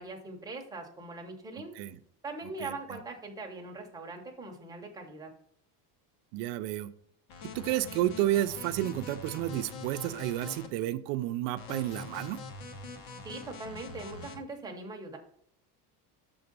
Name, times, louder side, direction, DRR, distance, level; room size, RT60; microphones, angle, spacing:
voice 1, 0.0-1.7 2.2-5.3 13.2-15.2, right 3 dB, 10° right, 1 dB, 0.8 m, -41 dB
voice 2, 6.3-6.9 7.5-12.4, right 14 dB, 80° right, 10 dB, 0.6 m, -31 dB
sound 1, 7.3-10.7 11.6-14.4, left 4 dB, 70° left, 1.5 m, -43 dB
6.9 x 3.8 x 5.2 m, 0.67 s
cardioid pair, 165°, 46 cm